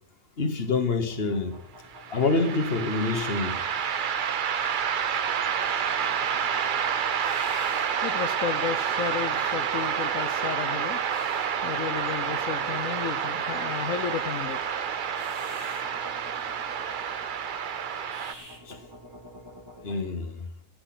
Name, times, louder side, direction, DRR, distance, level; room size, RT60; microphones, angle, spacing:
voice 1, 0.4-1.6 2.1-3.6 18.7-18.8 19.8-20.4, left 3 dB, 50° left, 1.6 m, -26 dB
sound 1, 0.9-20.0, left 1 dB, 20° right, 2.9 m, -47 dB
sound 2, 1.9-18.3, right 8 dB, 50° right, 0.7 m, -29 dB
voice 2, 8.0-11.0 11.6-14.6 19.8-20.0, left 8 dB, 85° left, 1.1 m, -33 dB
12.0 x 10.0 x 6.0 m
omnidirectional pair, 1.4 m